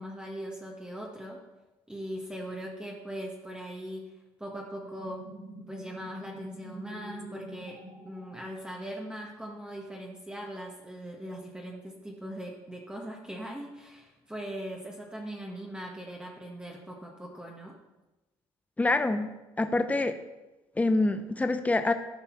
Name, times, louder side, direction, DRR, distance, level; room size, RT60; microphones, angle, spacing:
voice 1, 0.0-1.4 1.9-4.1 4.4-5.2 5.7-17.8, equal, 10° right, -1 dB, 1.7 m, -40 dB
sound 1, 4.7-9.1, right 1 dB, 40° right, 2.9 m, -46 dB
voice 2, 18.8-19.3 19.6-20.2 20.8-21.9, left 2 dB, 15° left, 9 dB, 0.7 m, -26 dB
13.5 x 5.5 x 4.8 m, 1.1 s
supercardioid pair, 70°, 11 cm